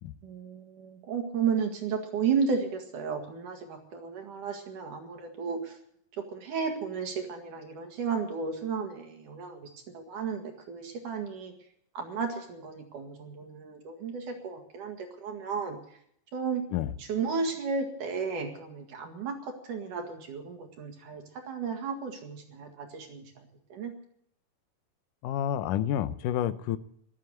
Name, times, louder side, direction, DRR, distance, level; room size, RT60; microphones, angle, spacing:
voice 1, 0.2-5.8 6.3-9.7 9.9-11.5 11.9-15.8 16.3-16.6 17.0-23.9, right 5 dB, 70° right, 3 dB, 3.4 m, -33 dB
voice 2, 25.2-26.8, left 11 dB, 75° left, 12 dB, 2.3 m, -29 dB
14.0 x 12.5 x 8.0 m, 0.67 s
omnidirectional pair, 3.9 m